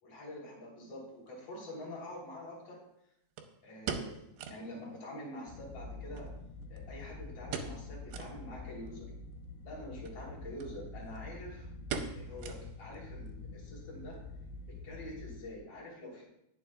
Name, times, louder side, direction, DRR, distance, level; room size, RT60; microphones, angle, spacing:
voice 1, 0.0-2.8 3.6-4.2 4.5-6.3 6.7-9.1 9.6-11.7 12.1-14.2 14.8-16.2, left 1 dB, 35° left, -4 dB, 4.3 m, -46 dB
sound 1, 1.3-1.4 3.4-4.7 5.0-5.1 5.4-5.5 6.1-7.0 7.5-8.4 8.9-9.0 9.9-10.2 10.6-10.7 11.0-11.4 11.9-13.0 13.3-13.4 13.9-14.3 14.6-14.7, right 6 dB, 75° right, 2.9 m, -41 dB
sound 2, 5.5-15.4, left 3 dB, 75° left, 2.3 m, -46 dB
20.0 x 7.2 x 2.5 m, 0.80 s
omnidirectional pair, 5.1 m